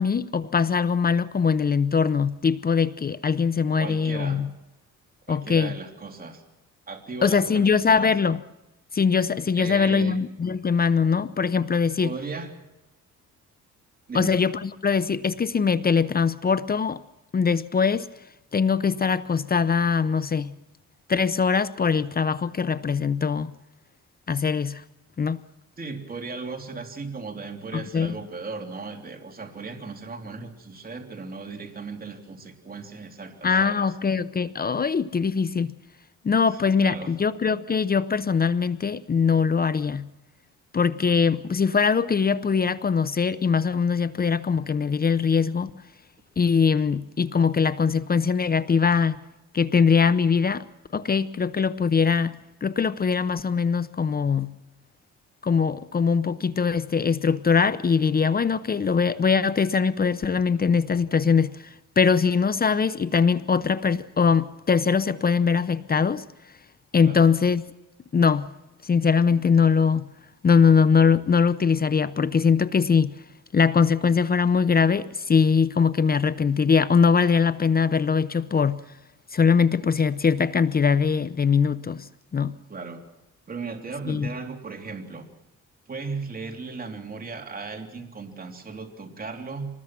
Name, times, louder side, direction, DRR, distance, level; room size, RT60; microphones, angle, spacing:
voice 1, 0.0-4.5 5.3-5.7 7.2-8.4 8.9-12.1 14.1-17.0 17.3-18.1 18.5-20.5 21.1-23.5 24.3-24.8 25.2-25.4 27.7-28.1 33.4-35.7 36.2-40.1 40.7-45.7 46.4-49.2 49.5-50.6 50.9-54.5 55.4-66.2 66.9-67.6 68.1-68.5 68.8-70.0 70.4-73.1 73.5-78.8 79.3-82.1 82.3-82.5 84.1-84.3, left 5 dB, 30° left, 0.8 m, -22 dB
voice 2, 3.8-4.4 5.3-6.4 6.9-8.1 9.5-10.2 12.0-12.5 14.1-14.4 25.8-34.0 36.5-37.1 67.0-67.3 82.7-83.0 83.5-85.3 85.9-89.7, right 4 dB, 30° right, 3.3 m, -36 dB
25.0 x 20.0 x 6.1 m
cardioid pair, 90°, 30 cm